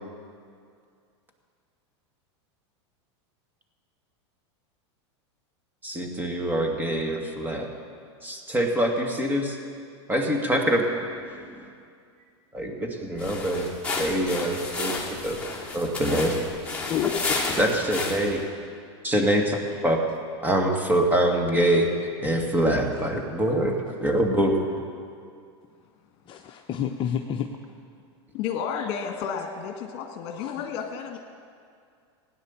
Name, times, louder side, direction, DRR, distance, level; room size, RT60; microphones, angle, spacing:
voice 1, 5.8-7.7 8.2-9.6 10.1-11.7 12.5-15.4 15.7-16.3 17.6-18.5 19.0-20.0 20.4-21.9 22.2-24.6, right 1 dB, 10° right, 3 dB, 2.1 m, -25 dB
sound 1, 13.2-18.4, left 3 dB, 5° left, 2.9 m, -31 dB
voice 2, 16.9-17.4 26.3-27.5 30.3-30.6, left 9 dB, 35° left, 3 dB, 0.9 m, -30 dB
voice 3, 28.3-31.2, left 7 dB, 50° left, 3 dB, 1.7 m, -32 dB
17.0 x 9.8 x 7.3 m, 2.3 s
hypercardioid pair, 115°, 15 cm